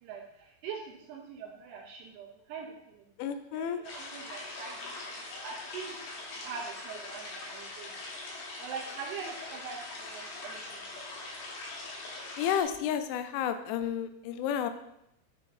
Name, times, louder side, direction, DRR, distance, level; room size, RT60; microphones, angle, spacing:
voice 1, 0.0-3.1 3.5-7.9 8.6-10.8 11.1-11.3, right 6 dB, 80° right, 0 dB, 2.5 m, -43 dB
voice 2, 3.2-3.8 12.4-14.7, left 9 dB, 85° left, 9 dB, 2.9 m, -31 dB
sound 1, 3.8-12.6, left 2 dB, 70° left, 3.2 m, -42 dB
8.3 x 6.8 x 2.6 m, 0.79 s
omnidirectional pair, 5.3 m